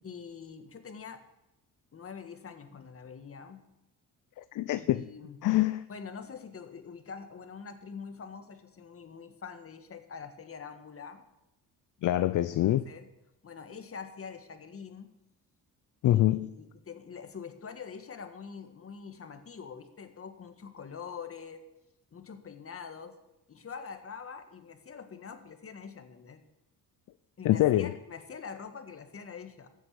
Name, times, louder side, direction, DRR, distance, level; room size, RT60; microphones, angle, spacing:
voice 1, 0.0-1.2 1.9-3.6 4.8-5.4 5.9-11.2 12.6-13.1 13.4-15.1 16.0-21.6 22.1-23.2 23.5-26.4 27.4-29.7, left 6 dB, 40° left, 1.8 m, -45 dB
voice 2, 4.4-5.0 5.4-5.8 12.0-12.8 16.0-16.5 27.4-27.9, left 14 dB, 60° left, 0.6 m, -25 dB
15.0 x 8.3 x 7.0 m
cardioid pair, 85°, 36 cm